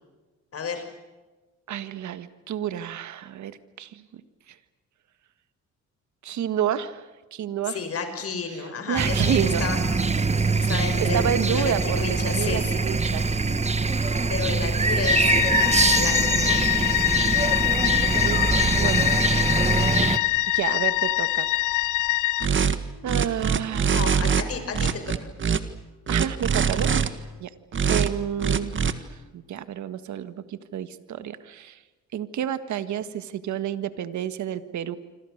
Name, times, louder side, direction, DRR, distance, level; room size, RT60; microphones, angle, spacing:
voice 1, 0.5-0.8 7.6-9.8 10.3-12.9 14.0-16.6 23.9-25.3, left 5 dB, 50° left, 7 dB, 6.0 m, -32 dB
voice 2, 1.7-4.2 4.5-4.6 6.2-7.8 8.5-9.6 11.0-13.3 17.6-19.1 20.5-21.5 23.0-24.3 26.1-27.0 27.4-27.5 27.9-31.8 32.1-35.0, right 9 dB, 70° right, 11 dB, 1.7 m, -30 dB
sound 1, 9.0-20.2, right 3 dB, 20° right, 1.6 m, -23 dB
sound 2, 15.1-22.5, left 18 dB, 85° left, 1.0 m, -24 dB
sound 3, 22.4-22.8 23.1-24.4 24.7-25.6 26.1-27.1 27.7-28.1 28.4-28.9, right 6 dB, 40° right, 1.8 m, -23 dB
27.0 x 26.0 x 6.6 m, 1.2 s
cardioid pair, 90°, 30 cm